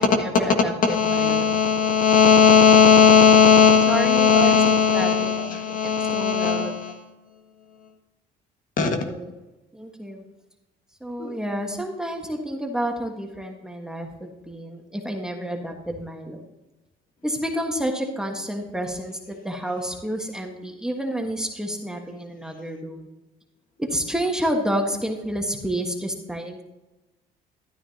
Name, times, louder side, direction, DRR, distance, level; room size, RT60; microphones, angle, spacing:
voice 1, 0.0-1.5 3.9-5.3 5.8-6.8 8.8-9.3 9.7-10.2 11.0-16.4 17.2-23.1 23.8-26.6, equal, 5° right, 2 dB, 1.4 m, -30 dB
voice 2, 0.8-6.9 8.8-8.9 11.2-11.4, left 6 dB, 50° left, 4 dB, 1.7 m, -17 dB
12.5 x 9.6 x 2.8 m, 1.1 s
cardioid pair, 110°, 17 cm